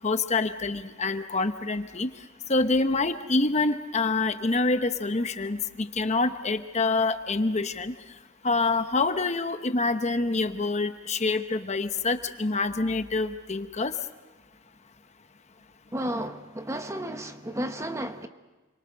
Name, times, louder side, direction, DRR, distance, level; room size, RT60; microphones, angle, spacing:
voice 1, 0.0-2.1 2.5-7.9 8.4-13.9, left 3 dB, 30° left, 9 dB, 0.9 m, -26 dB
voice 2, 15.9-18.3, right 1 dB, 15° right, 8 dB, 0.9 m, -32 dB
29.0 x 23.5 x 6.5 m, 1.2 s
head